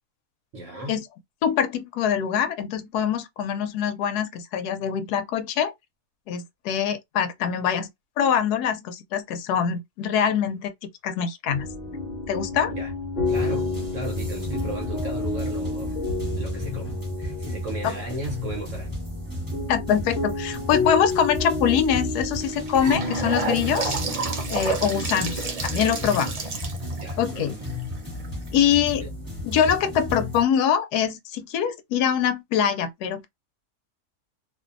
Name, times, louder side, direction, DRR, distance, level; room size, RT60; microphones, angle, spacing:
voice 1, 0.5-1.0 12.8-12.9 13.3-16.0 16.3-16.9 17.2-18.9 22.9-23.1 27.0-27.6 29.0-29.1, right 1 dB, 60° right, 1.0 m, -35 dB
voice 2, 1.4-5.7 6.3-7.9 8.2-10.7 11.0-11.7 12.3-12.7 17.8-17.9 19.7-24.0 24.5-26.5 27.2-27.6 28.5-29.0 29.4-33.3, left 8 dB, 85° left, 1.1 m, -24 dB
sound 1, 11.5-29.3, left 2 dB, 45° left, 0.9 m, -32 dB
sound 2, 13.3-30.4, left 1 dB, 15° right, 1.1 m, -34 dB
Gurgling / Sink (filling or washing) / Bathtub (filling or washing), 22.4-28.5, right 4 dB, 75° right, 0.3 m, -31 dB
2.6 x 2.5 x 2.4 m
omnidirectional pair, 1.6 m